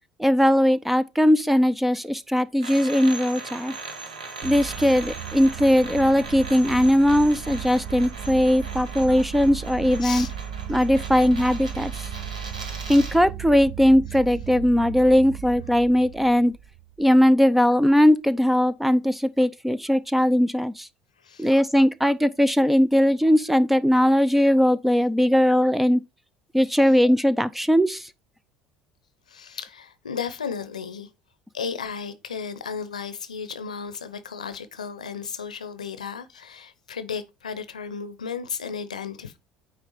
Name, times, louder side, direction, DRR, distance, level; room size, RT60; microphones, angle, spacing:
voice 1, 0.2-3.7 4.4-10.3 10.7-11.9 12.9-16.5 17.0-20.9 21.4-26.0 26.5-28.1, equal, 5° right, 0.6 m, -19 dB
sound 1, 2.6-13.2, right 3 dB, 85° right, 1.3 m, -39 dB
sound 2, 4.4-17.3, right 9 dB, 55° right, 0.6 m, -36 dB
voice 2, 10.0-10.3 21.2-21.5 29.3-31.1 31.5-39.4, left 6 dB, 80° left, 0.7 m, -34 dB
9.0 x 3.2 x 4.8 m
figure-of-eight pair, 60°, 4 cm